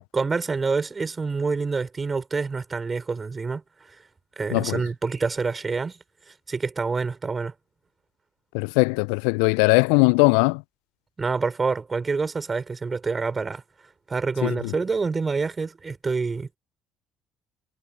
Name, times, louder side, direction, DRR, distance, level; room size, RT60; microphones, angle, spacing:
voice 1, 0.0-3.6 3.9-4.0 4.4-6.0 6.3-7.5 11.2-13.6 14.1-16.6, right 4 dB, 30° right, 5.1 m, -27 dB
voice 2, 4.5-4.8 8.5-10.6 14.4-14.7, left 32 dB, 75° left, 0.3 m, -20 dB
hypercardioid pair, 50°, 0 cm